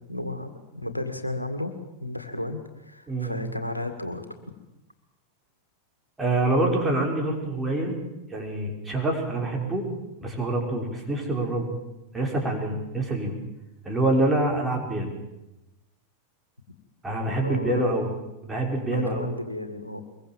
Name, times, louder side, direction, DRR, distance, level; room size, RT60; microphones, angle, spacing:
voice 1, 0.0-1.7 2.0-4.3 17.4-17.9 18.9-20.0, left 1 dB, 85° left, 7 dB, 2.1 m, -33 dB
voice 2, 3.1-3.4 6.2-8.0 8.3-9.9 10.2-11.7 12.1-13.4 13.8-15.1 17.0-18.1 18.4-19.3, right 2 dB, 10° right, 0 dB, 5.8 m, -26 dB
23.5 x 22.5 x 7.6 m, 0.96 s
figure-of-eight pair, 90°, 0 cm